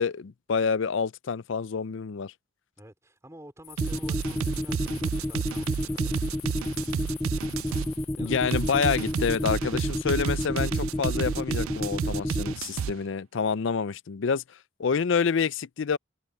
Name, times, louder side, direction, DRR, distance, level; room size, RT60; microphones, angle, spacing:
voice 1, 0.0-2.3 8.2-14.4 14.8-16.0, left 6 dB, 60° left, 0.5 m, -27 dB
voice 2, 2.8-6.2 8.1-8.3, right 1 dB, 15° right, 4.3 m, -49 dB
sound 1, 3.6-9.5, left 15 dB, 85° left, 2.7 m, -47 dB
sound 2, 3.8-12.5, left 1 dB, 10° left, 0.4 m, -30 dB
sound 3, 3.8-7.9 8.5-12.9, right 7 dB, 80° right, 0.3 m, -31 dB
head